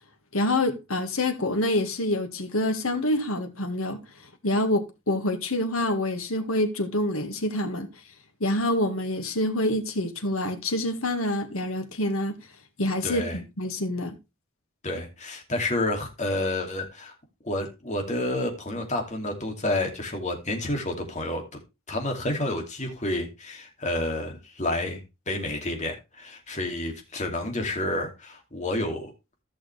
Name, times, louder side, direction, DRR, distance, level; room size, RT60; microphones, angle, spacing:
voice 1, 0.3-4.0 4.4-7.9 8.4-12.4 12.8-14.2, left 1 dB, 80° left, 1.9 m, -26 dB
voice 2, 13.0-13.4 14.8-17.1 17.4-21.6 21.9-29.1, left 1 dB, 35° left, 2.6 m, -30 dB
15.0 x 6.3 x 3.3 m
head